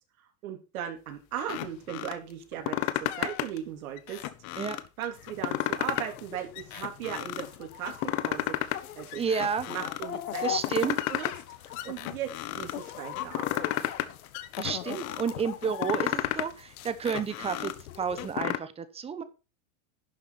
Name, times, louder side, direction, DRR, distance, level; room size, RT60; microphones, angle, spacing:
voice 1, 0.4-4.2 5.0-8.6 9.0-9.2 9.7-10.4 10.8-11.3 11.6-13.9, right 9 dB, 85° right, 4 dB, 3.6 m, -38 dB
sound 1, 1.4-2.1 2.5-3.6 4.0-4.9 5.3-6.2 6.5-7.4 7.9-8.8 9.1-10.1 10.4-11.4 11.7-12.7 13.1-14.1 14.3-15.2 15.6-16.5 16.9-18.6, left 15 dB, 40° left, 1.0 m, -32 dB
sound 2, 5.1-18.4, left 11 dB, 90° left, 1.5 m, -41 dB
voice 2, 9.2-9.7 10.4-11.0 14.6-19.2, right 6 dB, 15° right, 13 dB, 1.0 m, -31 dB
11.5 x 7.2 x 4.2 m, 0.31 s
supercardioid pair, 150°, 41 cm